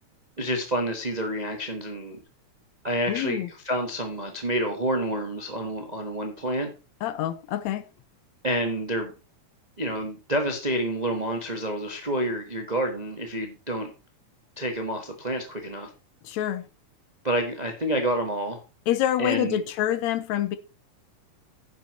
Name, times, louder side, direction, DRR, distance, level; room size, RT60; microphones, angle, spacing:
voice 1, 0.4-2.2 2.8-6.7 8.4-9.1 9.8-13.9 14.6-15.9 17.2-18.6 19.2-19.6, right 1 dB, 35° right, 0.6 m, -28 dB
voice 2, 3.1-3.5 7.0-7.8 16.2-16.6 18.9-20.6, left 12 dB, 80° left, 2.0 m, -26 dB
10.0 x 7.4 x 4.2 m
omnidirectional pair, 3.3 m